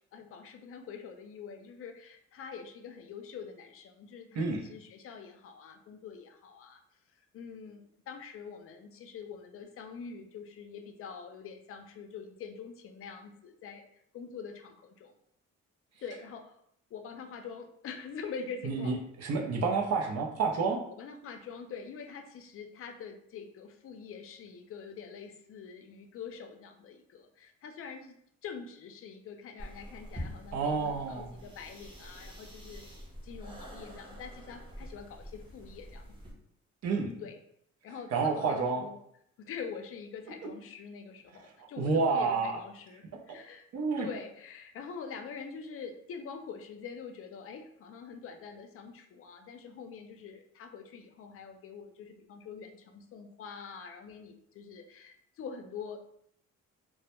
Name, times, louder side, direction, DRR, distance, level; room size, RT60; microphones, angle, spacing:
voice 1, 0.1-6.8 7.3-13.9 14.1-15.1 16.0-16.5 16.9-19.3 20.9-28.1 28.4-32.9 33.2-36.1 37.2-37.4 37.8-39.0 39.4-43.7 44.0-56.0, left 6 dB, 50° left, 6 dB, 0.4 m, -45 dB
voice 2, 18.6-20.8 30.5-31.3 36.8-37.1 38.1-38.8 41.6-42.6 43.7-44.1, right 4 dB, 60° right, 0 dB, 0.6 m, -29 dB
sound 1, 29.6-36.3, equal, 15° right, 0.7 m, -46 dB
2.1 x 2.1 x 2.9 m, 0.69 s
cardioid pair, 90°, 30 cm